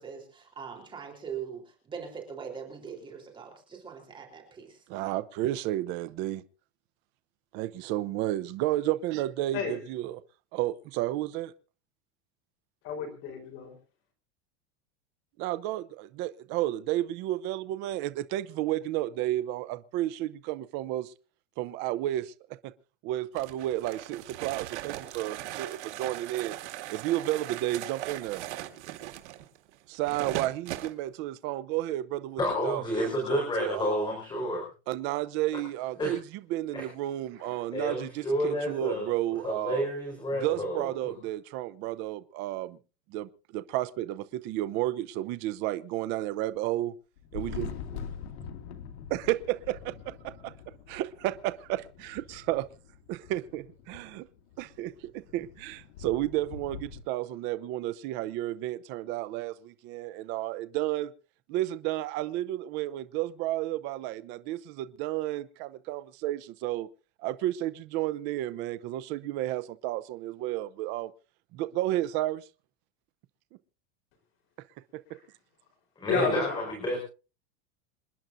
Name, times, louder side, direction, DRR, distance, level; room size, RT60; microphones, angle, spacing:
voice 1, 0.0-4.8, right 7 dB, 15° right, 3.7 m, -41 dB
voice 2, 4.9-6.4 7.5-10.2 10.5-11.5 15.4-21.1 21.6-22.3 22.6-22.7 23.0-26.6 26.9-28.4 29.9-34.1 34.9-36.2 36.5-39.9 40.3-42.8 43.1-46.9 47.3-48.0 49.1-50.5 50.9-52.7 53.1-54.3 54.6-61.1 61.5-66.9 67.2-71.1 71.5-72.4, right 15 dB, 30° right, 0.6 m, -32 dB
voice 3, 12.8-13.8 37.4-37.6 76.1-76.7, left 5 dB, 35° left, 4.1 m, -31 dB
sound 1, 23.4-30.9, right 14 dB, 90° right, 2.2 m, -39 dB
voice 4, 32.4-34.6 36.0-36.1 36.7-36.9 37.7-39.0 39.4-41.1 76.0-77.0, equal, 15° left, 4.7 m, -30 dB
Thunder, 47.2-57.0, left 7 dB, 75° left, 2.5 m, -44 dB
27.5 x 10.5 x 2.6 m
supercardioid pair, 170°, 34 cm